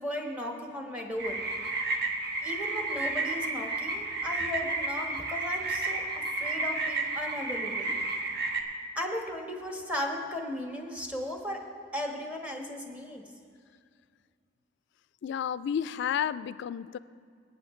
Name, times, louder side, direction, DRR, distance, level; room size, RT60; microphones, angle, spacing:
voice 1, 0.0-1.4 2.4-8.0 8.9-11.6 11.9-13.2, left 1 dB, 10° right, 1 dB, 1.3 m, -36 dB
sound 1, 1.2-8.6, right 2 dB, 60° right, 1.0 m, -32 dB
voice 2, 15.2-17.0, left 8 dB, 65° left, 16 dB, 0.3 m, -31 dB
17.5 x 8.8 x 3.1 m, 2.1 s
head